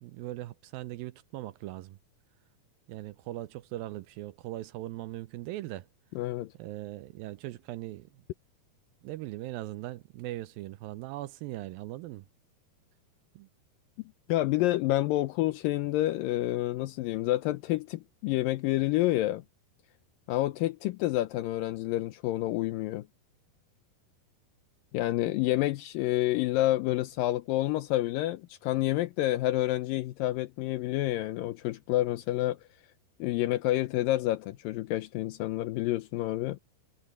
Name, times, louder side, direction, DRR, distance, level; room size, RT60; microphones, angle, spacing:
voice 1, 0.0-2.0 2.9-5.9 6.6-8.2 9.0-12.3 13.4-13.5, right 16 dB, 80° right, 2.3 m, -40 dB
voice 2, 6.2-6.5 14.3-19.4 20.3-23.1 24.9-32.6 33.2-36.6, left 16 dB, 80° left, 2.2 m, -28 dB
omnidirectional pair, 4.5 m